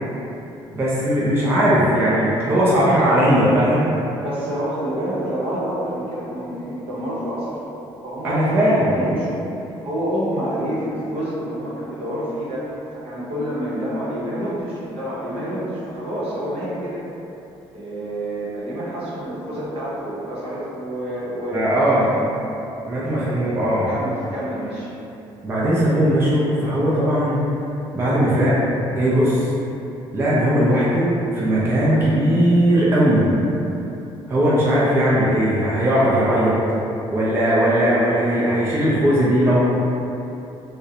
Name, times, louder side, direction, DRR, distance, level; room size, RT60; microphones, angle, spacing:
voice 1, 0.7-3.9 8.2-9.0 21.5-22.1 22.9-23.9 25.4-27.4 27.9-28.5 28.9-29.5 30.1-33.3 34.3-36.6 37.1-39.6, equal, 20° right, -8 dB, 0.4 m, -18 dB
voice 2, 4.2-7.7 8.0-9.4 9.8-17.0 17.7-22.3 23.9-24.9, equal, 65° right, -8 dB, 0.8 m, -28 dB
2.4 x 2.0 x 2.7 m, 2.9 s
cardioid pair, 120°, 11 cm